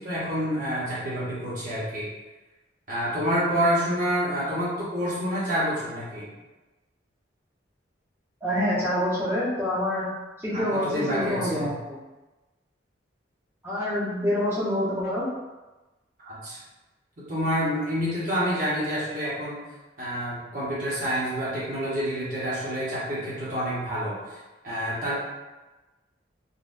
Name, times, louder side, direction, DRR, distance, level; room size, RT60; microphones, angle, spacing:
voice 1, 0.0-2.1 2.9-6.3 10.5-11.7 16.2-16.6 17.2-19.6 20.0-24.4 24.6-25.2, equal, 45° right, -9 dB, 1.2 m, -28 dB
voice 2, 8.4-10.1 10.4-12.0 13.6-15.3, left 1 dB, 10° right, -12 dB, 1.0 m, -26 dB
4.0 x 2.5 x 2.6 m, 1.1 s
head